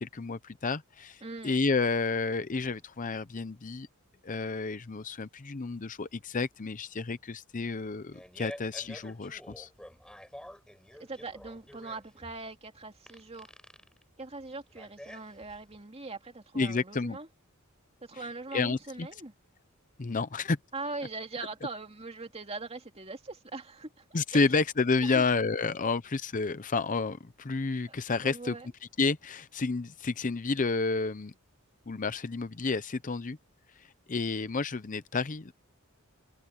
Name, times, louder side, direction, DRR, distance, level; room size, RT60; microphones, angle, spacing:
voice 1, 0.0-3.9 4.2-9.7 16.6-17.2 18.5-19.1 20.0-20.6 24.1-28.6 29.0-31.3 31.9-33.4 34.1-35.5, left 4 dB, 35° left, 0.6 m, -30 dB
voice 2, 1.2-1.6 11.0-13.5 14.2-17.3 18.0-19.3 20.7-24.0 24.3-24.4 25.0-25.2 28.2-28.7, right 3 dB, 30° right, 2.5 m, -41 dB
Fart, 8.0-15.8, equal, 5° left, 7.6 m, -49 dB
head